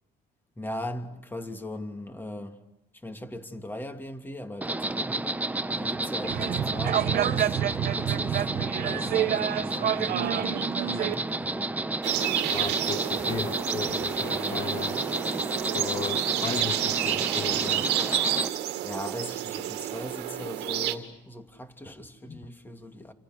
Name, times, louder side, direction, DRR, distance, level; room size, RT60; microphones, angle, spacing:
voice 1, 0.6-2.6 2.9-5.4 5.7-7.6 7.9-11.7 12.8-13.5 14.2-14.6 18.8-23.1, left 1 dB, 10° left, 2.9 m, -39 dB
Insect, 4.6-18.5, right 2 dB, 10° right, 1.0 m, -31 dB
sound 1, 6.2-11.1, right 11 dB, 60° right, 1.2 m, -28 dB
sound 2, 12.0-20.9, right 13 dB, 90° right, 2.2 m, -30 dB
voice 2, 12.5-15.0 15.6-17.9 22.3-22.5, left 7 dB, 35° left, 0.9 m, -36 dB
29.0 x 28.0 x 6.4 m
cardioid pair, 110°, 17 cm